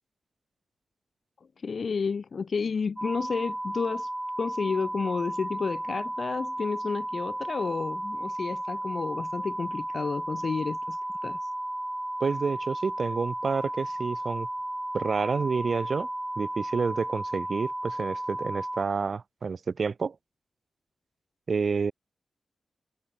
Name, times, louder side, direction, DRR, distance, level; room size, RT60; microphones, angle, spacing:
voice 1, 1.6-4.1 4.4-11.5, left 5 dB, 50° left, 1.4 m, -31 dB
sound 1, 3.0-18.8, right 1 dB, 10° right, 0.7 m, -34 dB
voice 2, 12.2-14.5 14.9-16.1 16.4-20.1 21.5-21.9, right 5 dB, 50° right, 1.6 m, -29 dB
wide cardioid pair, 140°, 0 cm